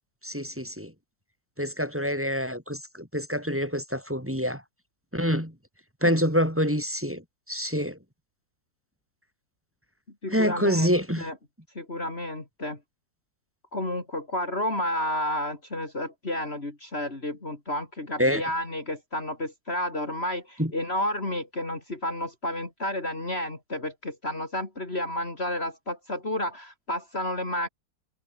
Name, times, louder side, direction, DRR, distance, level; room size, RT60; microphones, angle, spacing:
voice 1, 0.2-0.9 1.6-4.6 5.1-5.5 6.0-8.0 10.3-11.3 18.2-18.4 20.6-20.7, equal, 5° right, 5.6 m, -26 dB
voice 2, 10.2-11.3 11.8-12.8 13.7-27.7, left 1 dB, 35° left, 4.0 m, -31 dB
omnidirectional pair, 2.0 m